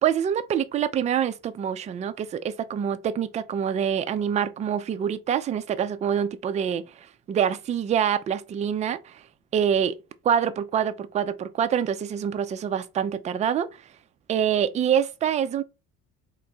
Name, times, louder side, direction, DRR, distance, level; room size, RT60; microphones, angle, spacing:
voice 1, 0.0-6.8 7.3-9.2 9.5-10.0 10.2-13.7 14.3-15.6, right 8 dB, 15° right, 0.3 m, -25 dB
4.2 x 2.9 x 3.7 m
figure-of-eight pair, 55°, 49 cm